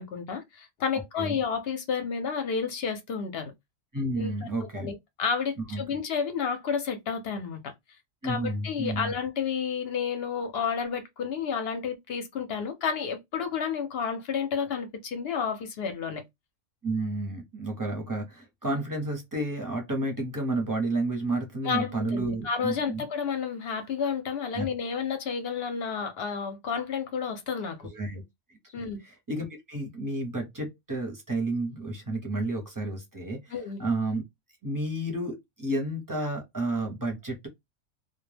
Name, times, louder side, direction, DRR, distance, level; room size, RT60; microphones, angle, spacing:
voice 1, 0.0-3.5 4.2-4.3 4.7-7.7 8.2-16.2 21.6-27.8 28.7-29.0 33.5-33.8, left 6 dB, 60° left, 0.7 m, -31 dB
voice 2, 3.9-4.9 5.6-5.8 8.2-9.1 16.8-23.0 24.5-24.7 27.9-28.2 28.6-34.2 34.6-37.5, right 2 dB, 20° right, 0.6 m, -31 dB
2.2 x 2.1 x 3.2 m
omnidirectional pair, 1.4 m